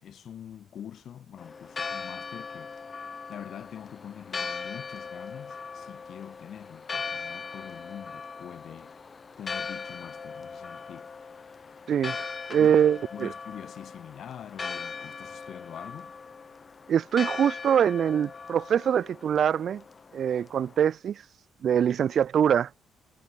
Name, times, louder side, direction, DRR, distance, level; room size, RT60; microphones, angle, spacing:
voice 1, 0.0-2.7 3.3-9.0 9.4-11.2 12.6-16.2, left 9 dB, 45° left, 2.4 m, -44 dB
Church bell, 1.4-20.8, left 5 dB, 20° left, 3.0 m, -39 dB
voice 2, 11.9-13.3 16.9-19.8 20.1-21.2 21.6-22.8, right 8 dB, 40° right, 0.6 m, -24 dB
cardioid pair, 180°, 0 cm